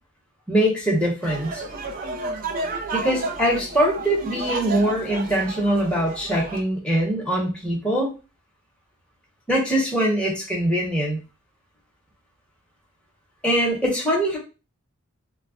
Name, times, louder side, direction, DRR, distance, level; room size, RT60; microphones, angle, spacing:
voice 1, 0.5-1.6 2.9-8.1 9.5-11.2 13.4-14.4, right 1 dB, 5° left, -3 dB, 0.8 m, -22 dB
sound 1, 1.2-6.6, right 3 dB, 40° right, 0.4 m, -32 dB
2.2 x 2.0 x 3.5 m, 0.31 s
head